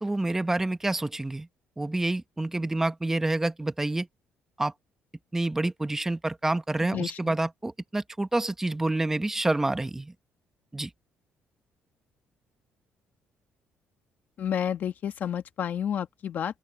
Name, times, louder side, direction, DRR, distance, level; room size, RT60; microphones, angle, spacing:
voice 1, 0.0-1.5 1.8-4.1 4.6-4.7 5.3-10.1 10.7-10.9, right 2 dB, 10° right, 0.9 m, -28 dB
voice 2, 6.8-7.3 14.4-16.6, left 9 dB, 50° left, 1.1 m, -31 dB
open air
cardioid pair, 135°, 4 cm